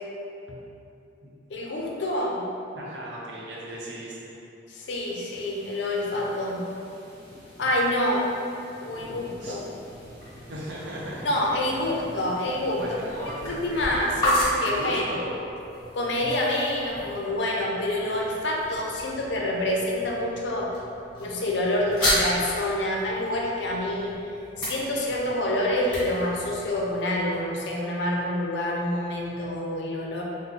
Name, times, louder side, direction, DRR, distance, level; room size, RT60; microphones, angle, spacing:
voice 1, 1.5-2.4 4.7-6.7 7.6-8.3 8.8-9.7 11.2-12.8 13.4-15.0 15.9-20.7 21.2-24.2 24.6-30.2, left 1 dB, 70° left, -2 dB, 0.5 m, -27 dB
voice 2, 2.7-4.3 9.4-9.6 10.5-11.3 12.8-13.9 14.6-15.4, equal, 70° right, -5 dB, 0.7 m, -36 dB
sound 1, 5.0-14.9, equal, 30° right, 1.3 m, -48 dB
sound 2, 9.6-27.4, equal, 20° left, 1.5 m, -34 dB
3.7 x 2.2 x 3.2 m, 2.7 s
head